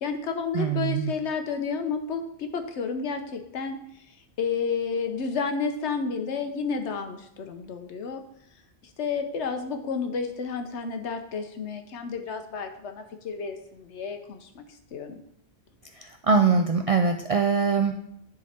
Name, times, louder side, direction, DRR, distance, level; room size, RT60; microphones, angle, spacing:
voice 1, 0.0-3.8 4.4-8.2 9.0-14.6 14.9-15.1, left 5 dB, 90° left, 7 dB, 1.1 m, -31 dB
voice 2, 0.5-1.1 16.0-18.0, right 5 dB, 65° right, 5 dB, 0.3 m, -23 dB
10.0 x 3.8 x 4.3 m, 0.72 s
omnidirectional pair, 1.1 m